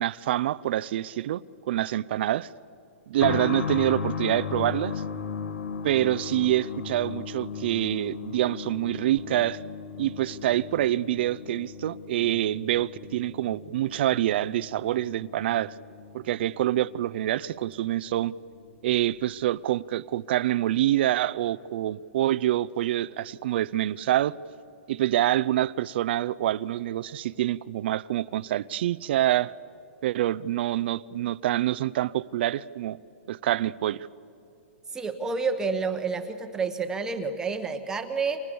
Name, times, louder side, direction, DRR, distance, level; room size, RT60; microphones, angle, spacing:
voice 1, 0.0-1.4 1.7-2.5 3.1-5.0 5.8-9.6 10.0-15.8 16.1-18.3 18.8-24.3 24.9-29.5 30.0-33.0 33.3-34.1, right 13 dB, 50° right, 0.6 m, -26 dB
sound 1, 3.2-17.6 17.9-18.0 19.0-19.1, left 6 dB, 90° left, 2.2 m, -36 dB
voice 2, 34.9-38.4, right 4 dB, 10° right, 1.0 m, -29 dB
30.0 x 26.5 x 7.0 m
hypercardioid pair, 160°, 7 cm